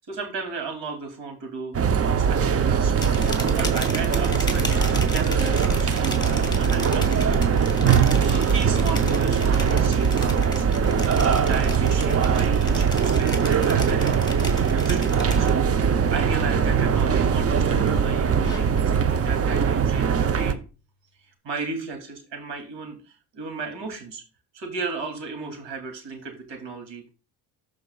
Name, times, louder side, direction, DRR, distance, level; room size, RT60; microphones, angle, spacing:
voice 1, 0.1-4.8 5.1-7.5 8.0-10.9 11.1-14.6 14.8-15.5 15.8-20.6 21.4-24.2 24.5-27.1, right 4 dB, 65° right, 5 dB, 2.8 m, -35 dB
sound 1, 1.7-20.5, right 7 dB, 30° right, 0.7 m, -21 dB
sound 2, 2.9-15.8 16.2-16.6 17.0-18.9, left 2 dB, 10° left, 2.2 m, -36 dB
Bowed string instrument, 15.7-19.5, left 1 dB, 30° left, 1.0 m, -40 dB
13.5 x 4.9 x 2.4 m, 0.33 s
supercardioid pair, 65°, 46 cm